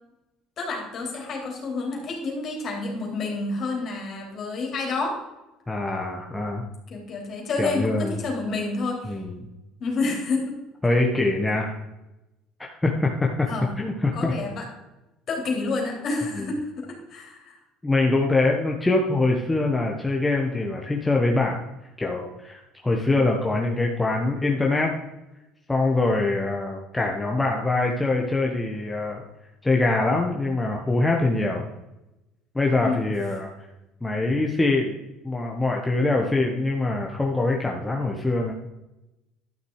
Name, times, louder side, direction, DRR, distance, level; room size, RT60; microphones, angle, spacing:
voice 1, 0.6-5.2 6.9-9.2 9.8-10.5 13.5-13.7 14.1-14.7 15.3-17.6 32.8-33.1, left 3 dB, 50° left, 1 dB, 3.6 m, -29 dB
voice 2, 5.7-6.6 7.6-8.2 9.0-9.5 10.8-11.7 12.6-13.5 13.8-14.3 16.3-16.5 17.8-21.6 22.0-24.9 25.7-29.2 29.6-31.7 32.5-33.5 34.0-35.0 35.2-38.5, left 2 dB, 10° left, 0 dB, 1.2 m, -24 dB
12.0 x 6.5 x 4.8 m, 0.97 s
supercardioid pair, 90°, 0 cm